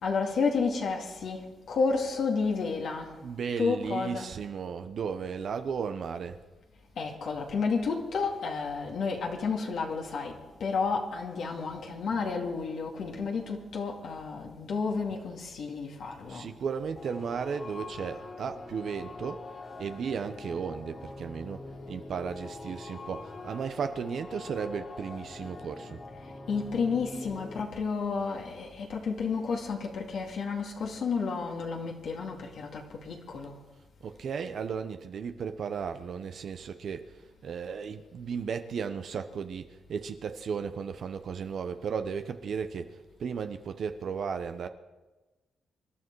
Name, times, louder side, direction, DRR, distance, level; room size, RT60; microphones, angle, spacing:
voice 1, 0.0-3.2 3.6-4.3 7.0-16.5 26.2-33.6, left 5 dB, 70° left, 2.3 m, -31 dB
voice 2, 3.2-6.4 16.3-26.0 34.0-44.7, right 6 dB, 65° right, 0.9 m, -35 dB
sound 1, 17.0-27.6, left 3 dB, 45° left, 2.9 m, -44 dB
25.5 x 11.0 x 4.7 m
cardioid pair, 75°, 0 cm